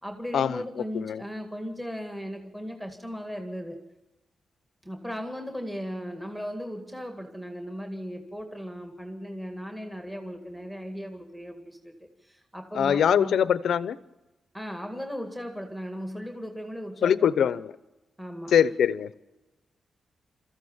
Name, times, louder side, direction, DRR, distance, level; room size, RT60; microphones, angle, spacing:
voice 1, 0.0-3.8 4.8-11.9 12.2-13.5 14.5-17.6 18.2-18.5, equal, 5° right, 5 dB, 2.0 m, -37 dB
voice 2, 12.7-14.0 17.0-17.7 18.5-19.1, left 8 dB, 80° left, 16 dB, 0.8 m, -23 dB
28.5 x 14.5 x 7.3 m, 1.1 s
wide cardioid pair, 150°, 0 cm